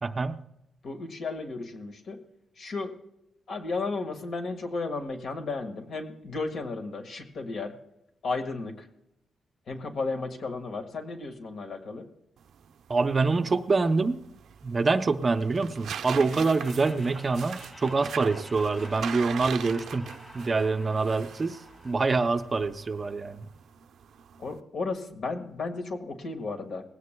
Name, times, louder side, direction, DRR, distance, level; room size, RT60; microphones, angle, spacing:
voice 1, 0.0-0.4 12.9-14.2 14.6-23.5, right 4 dB, 30° right, 9 dB, 0.5 m, -26 dB
voice 2, 0.8-2.2 2.6-2.9 3.5-7.7 8.2-8.8 9.7-12.1 24.4-26.8, left 3 dB, 60° left, 4 dB, 1.6 m, -34 dB
sound 1, 12.4-24.6, right 8 dB, 80° right, 0.6 m, -41 dB
Laughter, 16.1-23.1, left 1 dB, 15° left, 2.1 m, -49 dB
19.5 x 16.0 x 2.2 m, 0.86 s
wide cardioid pair, 150°, 0 cm